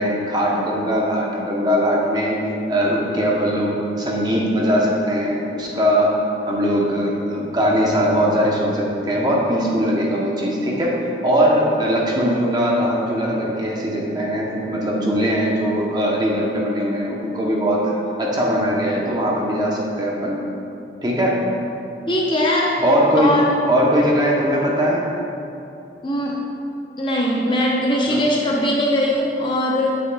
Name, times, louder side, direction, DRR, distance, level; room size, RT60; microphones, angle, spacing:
voice 1, 0.0-2.4 2.7-6.1 6.5-10.9 11.2-20.4 21.0-21.4 22.8-23.4 23.7-25.1 28.1-28.2, equal, 25° right, -3 dB, 0.7 m, -20 dB
voice 2, 22.1-22.8 23.2-23.5 26.0-26.4 27.0-29.9, left 1 dB, 25° left, -3 dB, 0.7 m, -20 dB
8.1 x 6.5 x 2.2 m, 2.7 s
head